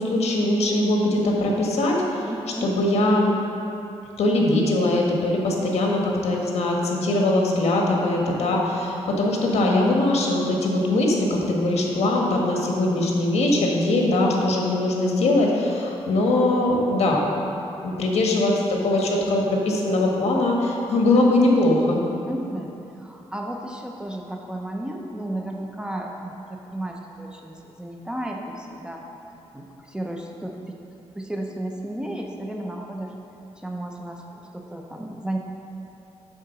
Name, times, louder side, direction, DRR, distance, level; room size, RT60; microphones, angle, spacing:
voice 1, 0.0-2.3 2.6-3.3 4.2-17.2 17.8-22.0, left 2 dB, 75° left, -1 dB, 1.3 m, -21 dB
voice 2, 2.3-2.8 22.3-29.0 29.5-30.8 31.2-33.1 33.6-35.4, right 1 dB, 5° right, 1 dB, 0.6 m, -33 dB
8.7 x 3.9 x 6.7 m, 2.9 s
wide cardioid pair, 135°, 11 cm